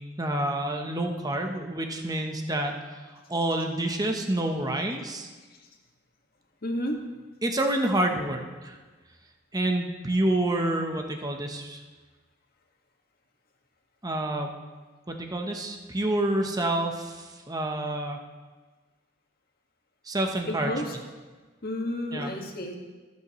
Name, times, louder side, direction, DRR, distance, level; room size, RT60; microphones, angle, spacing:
voice 1, 0.0-3.0 3.3-5.3 7.4-8.8 9.5-11.8 14.0-14.5 15.1-18.2 20.1-20.7 22.1-22.3, right 1 dB, 20° right, 3 dB, 1.0 m, -28 dB
voice 2, 6.6-7.0 20.5-21.0 21.6-22.7, left 1 dB, 55° left, 1 dB, 1.8 m, -31 dB
25.5 x 8.5 x 3.1 m, 1.3 s
head